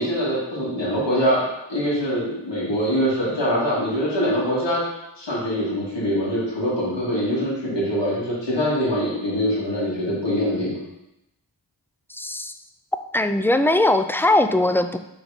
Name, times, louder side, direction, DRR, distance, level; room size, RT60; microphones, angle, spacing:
voice 1, 0.0-1.4 1.7-4.8 5.2-10.8, equal, 65° left, -7 dB, 2.5 m, -23 dB
voice 2, 12.1-12.5 13.1-15.0, left 1 dB, 5° left, 9 dB, 0.4 m, -20 dB
6.2 x 3.9 x 5.1 m, 0.89 s
wide cardioid pair, 40°, 45 cm